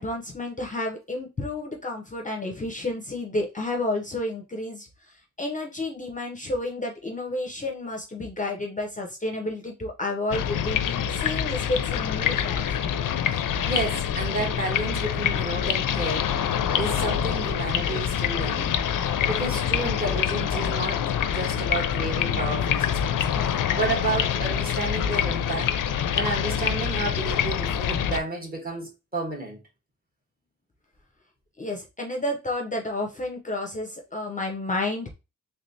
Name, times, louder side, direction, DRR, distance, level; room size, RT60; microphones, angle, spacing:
voice 1, 0.0-12.7 31.6-35.1, left 2 dB, 25° left, 0.6 m, -31 dB
sound 1, 10.3-28.2, left 9 dB, 80° left, 0.5 m, -26 dB
voice 2, 13.3-16.3 16.7-18.8 19.3-25.7 26.1-29.6, right 2 dB, 30° right, 1.3 m, -31 dB
3.3 x 3.2 x 2.7 m
wide cardioid pair, 155°, 32 cm